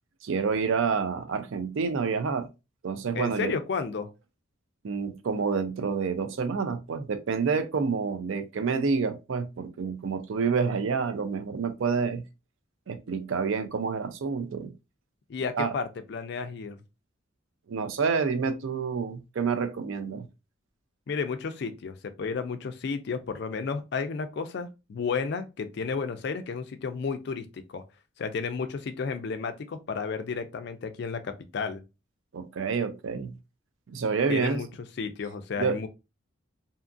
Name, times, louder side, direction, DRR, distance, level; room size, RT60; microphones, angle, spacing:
voice 1, 0.2-2.5 2.8-3.6 4.8-12.2 12.9-14.7 15.5-15.8 17.7-20.3 32.3-33.4 33.9-34.6 35.6-35.8, right 5 dB, 70° right, 0.4 m, -28 dB
voice 2, 3.1-4.1 15.3-16.8 21.1-27.8 28.2-31.8 34.3-34.7 35.0-35.9, left 5 dB, 50° left, 0.3 m, -32 dB
2.7 x 2.3 x 2.5 m
head